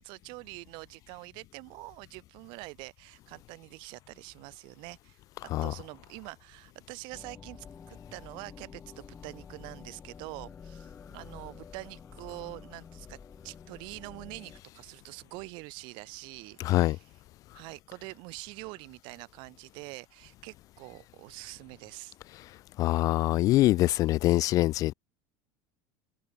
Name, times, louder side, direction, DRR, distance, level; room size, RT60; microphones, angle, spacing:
voice 1, 0.0-5.2 5.6-13.2 13.4-17.1 17.5-22.2, right 27 dB, 55° right, 2.9 m, -45 dB
sound 1, 7.1-14.6, left 6 dB, 20° left, 5.9 m, -49 dB
voice 2, 16.6-17.0 22.8-24.9, left 16 dB, 35° left, 0.3 m, -24 dB
cardioid pair, 160°, 10 cm